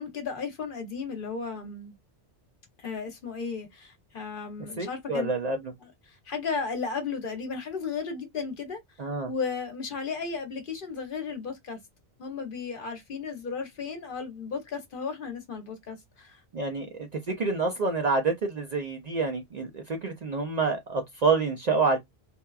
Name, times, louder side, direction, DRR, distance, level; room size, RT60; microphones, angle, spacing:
voice 1, 0.0-1.9 2.8-5.4 5.8-8.8 9.2-11.8 12.2-16.4, left 5 dB, 55° left, 0.8 m, -34 dB
voice 2, 4.8-5.6 9.0-9.3 16.5-22.0, right 4 dB, 55° right, 0.5 m, -27 dB
2.8 x 2.2 x 2.2 m
omnidirectional pair, 1.1 m